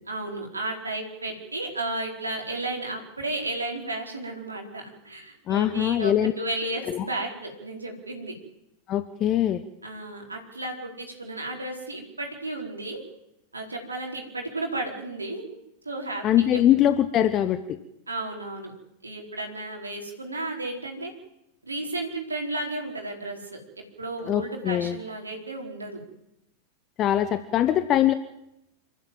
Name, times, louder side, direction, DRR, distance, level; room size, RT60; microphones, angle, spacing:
voice 1, 0.1-8.3 9.8-13.0 13.5-15.6 15.8-16.3 16.5-16.6 18.1-18.7 19.0-21.1 21.6-23.6 24.0-26.0, right 2 dB, 80° right, 2 dB, 4.4 m, -33 dB
voice 2, 5.5-6.3 6.9-7.1 8.9-9.6 16.2-17.8 24.3-25.0 27.0-28.1, left 11 dB, 35° left, 12 dB, 1.1 m, -22 dB
26.5 x 14.0 x 7.7 m, 0.86 s
figure-of-eight pair, 90°, 0 cm